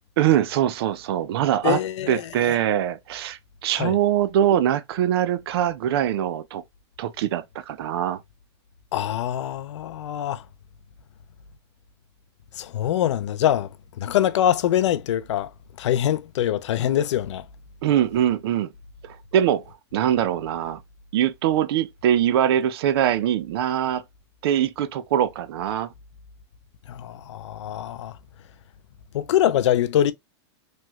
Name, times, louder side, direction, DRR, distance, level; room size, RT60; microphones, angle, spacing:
voice 1, 0.2-1.8 2.1-6.6 7.0-8.2 17.8-18.7 19.0-19.6 19.9-20.8 21.1-24.0 24.4-25.9, right 10 dB, 60° right, 0.4 m, -23 dB
voice 2, 1.6-2.3 3.8-4.0 8.9-10.4 12.6-13.7 14.0-15.5 15.8-17.5 26.9-28.2 29.1-30.1, left 11 dB, 85° left, 0.4 m, -24 dB
3.0 x 2.3 x 3.0 m
supercardioid pair, 155°, 15 cm